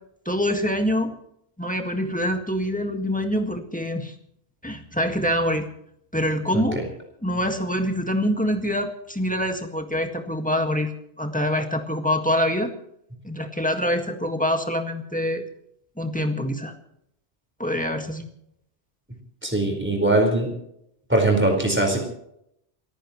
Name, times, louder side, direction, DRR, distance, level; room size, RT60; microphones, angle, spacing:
voice 1, 0.3-1.2 1.6-4.1 4.6-5.7 6.1-6.8 7.2-12.7 13.2-15.4 16.0-16.7 17.6-18.3, equal, 5° left, 4 dB, 1.8 m, -25 dB
voice 2, 6.5-6.8 19.4-20.5 21.1-22.0, right 2 dB, 10° right, 2 dB, 4.7 m, -21 dB
28.5 x 15.5 x 3.1 m, 0.76 s
omnidirectional pair, 1.1 m